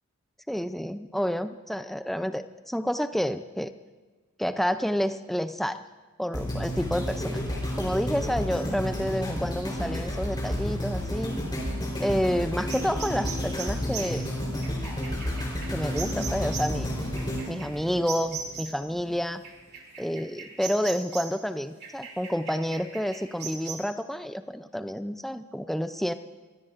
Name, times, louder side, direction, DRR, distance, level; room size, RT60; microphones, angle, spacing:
voice 1, 0.5-3.7 4.4-5.8 6.2-7.4 7.8-11.4 12.0-14.2 15.7-16.9 17.5-19.4 20.0-26.1, equal, ahead, 10 dB, 0.4 m, -29 dB
sound 1, 6.3-18.5 19.1-19.2, equal, 20° left, 3.8 m, -31 dB
sound 2, 12.7-18.9 19.4-21.4 21.8-23.8, right 5 dB, 45° right, 2.6 m, -39 dB
23.5 x 16.5 x 2.5 m, 1.4 s
head